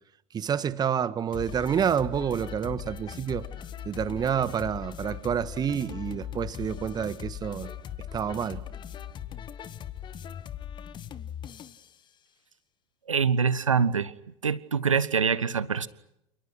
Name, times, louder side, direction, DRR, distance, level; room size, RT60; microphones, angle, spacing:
voice 1, 0.3-3.5 3.8-7.7 8.1-8.6, right 8 dB, 25° right, 1.6 m, -28 dB
sound 1, 1.3-11.9, left 9 dB, 30° left, 1.4 m, -39 dB
voice 2, 13.1-14.1 14.4-15.9, right 6 dB, 75° right, 1.3 m, -24 dB
28.5 x 28.0 x 6.3 m
figure-of-eight pair, 85°, 17 cm